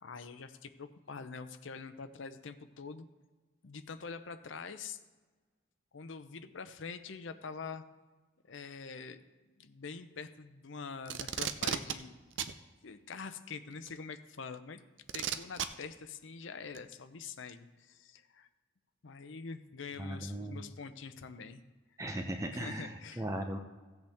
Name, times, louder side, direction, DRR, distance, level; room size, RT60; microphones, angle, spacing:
voice 1, 0.0-3.1 3.6-5.0 5.9-7.8 8.4-9.2 9.6-12.2 12.8-14.8 15.1-18.5 19.0-21.6 22.5-23.3, left 5 dB, 70° left, 10 dB, 0.6 m, -45 dB
Packing tape duct tape, 11.1-12.0 12.4-12.5 13.9-14.0 15.1-15.7 16.8-16.9, right 9 dB, 65° right, 0.5 m, -34 dB
voice 2, 20.0-20.6 22.0-23.6, right 1 dB, 15° right, 4 dB, 0.5 m, -38 dB
15.5 x 8.0 x 3.5 m, 1.3 s
head